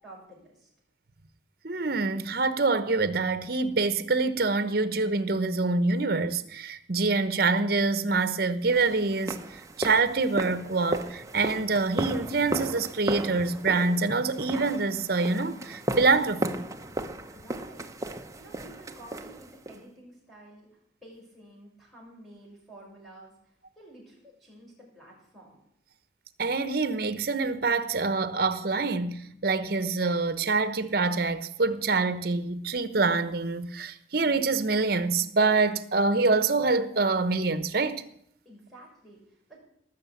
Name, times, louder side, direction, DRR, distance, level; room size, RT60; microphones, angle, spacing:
voice 1, 0.0-0.7 17.3-25.6 38.4-39.6, right 1 dB, ahead, 6.2 m, -51 dB
voice 2, 1.6-9.4 9.8-16.7 26.4-38.1, right 3 dB, 55° right, 1.0 m, -26 dB
sound 1, 8.7-19.8, right 1 dB, 15° right, 0.8 m, -35 dB
18.5 x 6.7 x 8.5 m
head